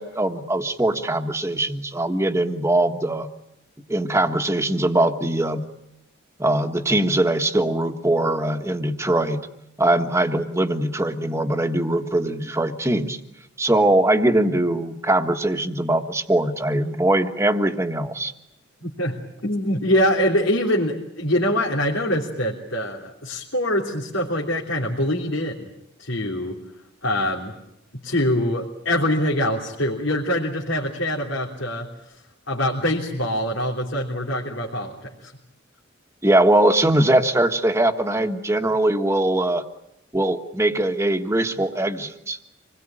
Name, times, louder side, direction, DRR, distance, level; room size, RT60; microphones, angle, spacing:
voice 1, 0.0-3.3 3.9-5.7 6.4-9.5 9.8-13.2 13.6-18.3 36.2-39.6 40.1-42.4, right 1 dB, 15° right, 6 dB, 1.5 m, -21 dB
voice 2, 18.8-25.7 26.0-26.6 27.0-27.5 28.0-31.9 32.5-35.3, left 1 dB, 90° left, -3 dB, 3.3 m, -24 dB
27.0 x 21.0 x 9.0 m, 0.83 s
head